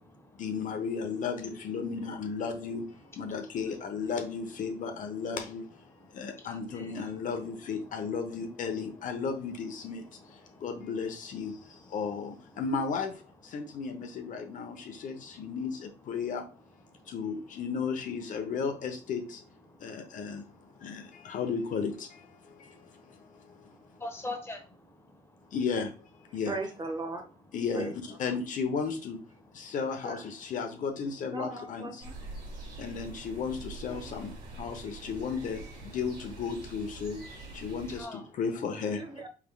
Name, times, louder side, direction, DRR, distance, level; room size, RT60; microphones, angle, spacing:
voice 1, 0.4-5.8 6.1-16.5 17.1-19.4 19.8-20.5 20.8-23.7 25.5-25.9 26.3-26.5 27.5-27.9 28.2-29.2 29.5-31.9 32.8-39.0, left 5 dB, 50° left, 0.8 m, -34 dB
voice 2, 6.2-6.9 10.5-10.6 14.8-14.9 16.9-17.0 19.8-21.2 22.7-25.1 38.0-38.2, left 2 dB, 15° left, 1.2 m, -45 dB
voice 3, 26.4-27.4 27.7-27.9 28.3-28.4 30.0-30.2 31.3-32.1 38.9-39.3, right 2 dB, 25° right, 0.8 m, -37 dB
sound 1, 32.0-38.0, right 2 dB, 70° right, 2.2 m, -45 dB
4.7 x 3.6 x 2.3 m
cardioid pair, 110°, 17 cm